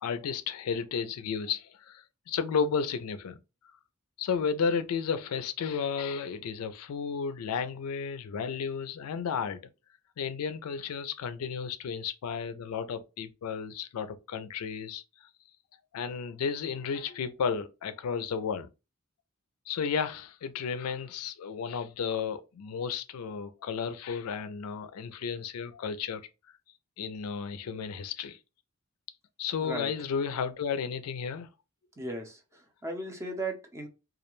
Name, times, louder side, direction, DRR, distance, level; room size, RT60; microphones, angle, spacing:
voice 1, 0.0-3.4 4.2-9.7 10.2-15.3 15.9-18.7 19.7-26.2 27.0-28.4 29.4-31.5, left 6 dB, 80° left, 0.4 m, -33 dB
voice 2, 29.6-29.9 32.0-33.9, right 2 dB, 15° right, 0.5 m, -37 dB
2.3 x 2.1 x 2.9 m
head